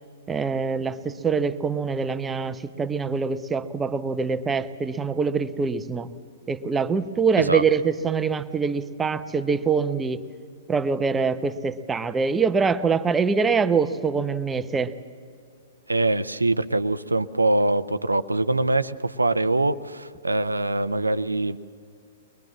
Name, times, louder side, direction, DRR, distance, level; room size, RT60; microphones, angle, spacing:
voice 1, 0.3-6.1 6.5-10.2 10.7-14.9, right 5 dB, 15° right, 12 dB, 0.8 m, -24 dB
voice 2, 15.9-21.6, right 2 dB, 80° right, 15 dB, 0.7 m, -23 dB
23.0 x 21.0 x 7.4 m, 2.2 s
figure-of-eight pair, 110°, 0 cm